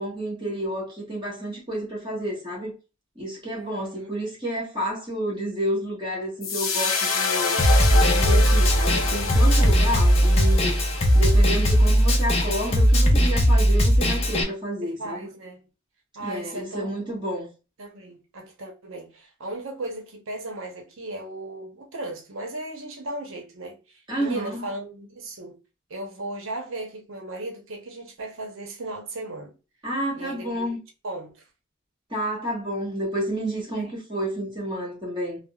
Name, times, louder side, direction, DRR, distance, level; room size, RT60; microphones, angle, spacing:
voice 1, 0.0-2.7 3.1-7.6 7.9-10.8 11.1-15.3 16.2-17.5 24.1-24.7 29.8-30.8 32.1-35.4, equal, 20° right, 1.2 m, -30 dB
voice 2, 3.5-4.1 14.8-15.6 16.1-17.1 17.8-25.6 25.9-29.5 30.1-30.7 31.0-31.5 33.7-33.9, right 2 dB, 75° right, 0.7 m, -36 dB
sound 1, 6.4-12.8, left 4 dB, 80° left, 0.7 m, -28 dB
Snare drum, 7.6-14.4, equal, 30° left, 0.4 m, -19 dB
3.3 x 2.0 x 2.3 m
head